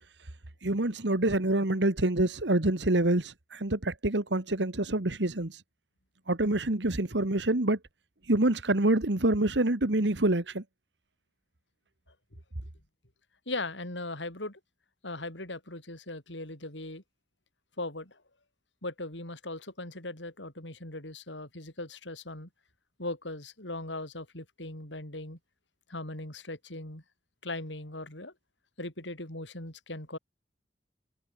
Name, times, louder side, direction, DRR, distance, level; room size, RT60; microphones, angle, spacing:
voice 1, 0.6-5.6 6.3-7.8 8.3-10.6, right 2 dB, 70° right, 1.8 m, -26 dB
voice 2, 13.5-14.6 15.0-17.0 17.8-18.2 18.8-22.5 23.0-25.4 25.9-27.0 27.4-28.3 28.8-30.2, left 2 dB, 90° left, 7.5 m, -39 dB
head